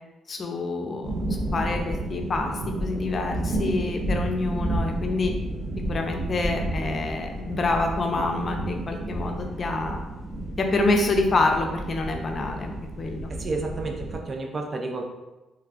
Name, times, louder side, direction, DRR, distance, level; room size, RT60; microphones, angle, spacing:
voice 1, 0.3-1.2 1.5-2.5 2.8-5.3 5.9-10.0 10.6-13.3, left 2 dB, 40° left, 3 dB, 0.5 m, -27 dB
sound 1, 1.0-14.2, right 1 dB, 60° right, 1.0 m, -31 dB
voice 2, 13.3-15.0, right 3 dB, 40° right, 3 dB, 0.5 m, -31 dB
3.1 x 2.3 x 3.6 m, 1.1 s
cardioid pair, 90°, 0 cm